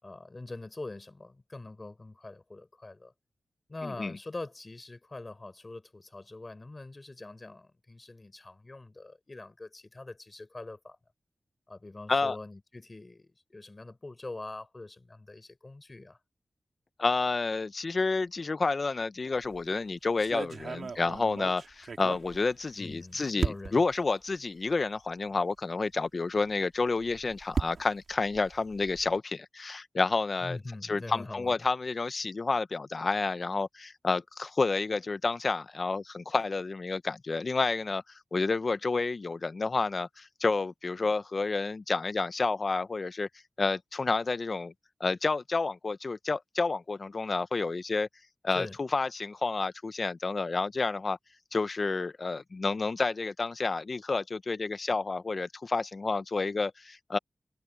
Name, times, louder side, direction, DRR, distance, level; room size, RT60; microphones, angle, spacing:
voice 1, 0.0-3.1 3.7-11.0 11.7-16.2 22.8-23.8 30.4-31.5 48.5-48.8, left 2 dB, 35° left, 4.7 m, -43 dB
voice 2, 3.8-4.2 12.1-12.4 17.0-38.0 38.3-43.3 43.6-44.7 45.0-48.1 48.4-51.2 51.5-57.2, left 3 dB, 50° left, 0.9 m, -30 dB
sound 1, 19.3-19.7 20.2-22.9 23.4-24.0 24.7-24.8 25.1-25.2 26.9-29.2, right 5 dB, 75° right, 2.3 m, -36 dB
cardioid pair, 55°, 0 cm